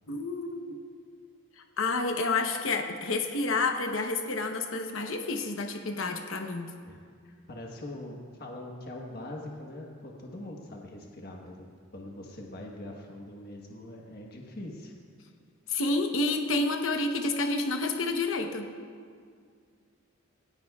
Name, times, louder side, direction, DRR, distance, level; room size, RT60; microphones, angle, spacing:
voice 1, 0.1-0.8 1.8-6.7 15.7-18.7, left 3 dB, 65° left, 4 dB, 0.9 m, -29 dB
voice 2, 7.2-14.9, left 1 dB, 50° left, 0 dB, 1.2 m, -42 dB
19.0 x 17.5 x 2.4 m, 2.1 s
head